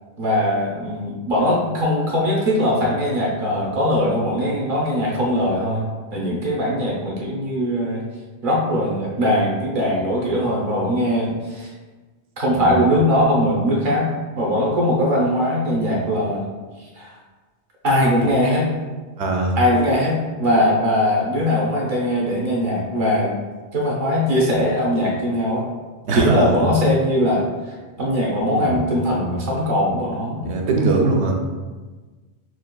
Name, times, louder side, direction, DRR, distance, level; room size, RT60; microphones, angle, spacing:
voice 1, 0.2-5.9 6.1-8.0 8.4-11.7 12.4-14.1 14.4-16.5 17.0-17.1 17.8-18.7 19.6-23.3 23.7-25.7 26.1-27.5 28.0-30.4, equal, 50° right, -3 dB, 1.0 m, -20 dB
voice 2, 19.2-19.6 26.0-26.6 28.0-28.1 28.6-28.8 30.4-31.4, right 2 dB, 75° right, 1 dB, 0.9 m, -20 dB
6.0 x 2.4 x 2.3 m, 1.3 s
omnidirectional pair, 1.1 m